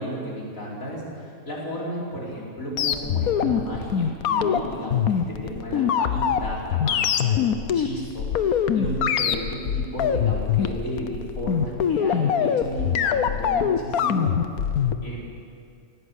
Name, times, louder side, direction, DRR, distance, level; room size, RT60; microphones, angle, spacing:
voice 1, 0.0-14.3 15.0-15.3, equal, 70° left, -4 dB, 5.3 m, -33 dB
sound 1, 2.8-15.0, left 8 dB, 85° left, 1.4 m, -23 dB
19.5 x 17.0 x 8.2 m, 2.3 s
omnidirectional pair, 1.5 m